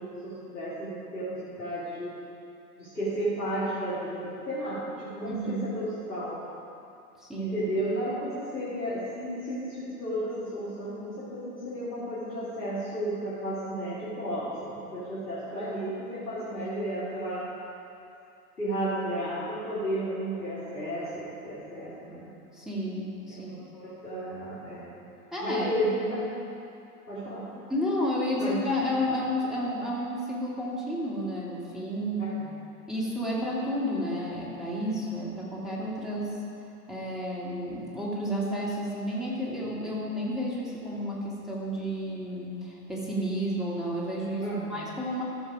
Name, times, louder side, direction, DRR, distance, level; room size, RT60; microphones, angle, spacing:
voice 1, 0.0-2.1 2.8-6.5 7.4-17.4 18.6-22.3 23.3-25.0 25.4-26.4 27.1-27.5 28.4-28.6 32.2-32.4 44.4-44.8, right 1 dB, 85° left, -12 dB, 2.8 m, -33 dB
voice 2, 5.2-5.6 7.2-7.5 22.5-23.7 25.3-25.7 27.7-32.3 32.9-36.3 36.9-44.4 44.7-45.2, equal, ahead, -6 dB, 2.4 m, -31 dB
14.0 x 6.1 x 5.0 m, 2.7 s
figure-of-eight pair, 95°, 45 cm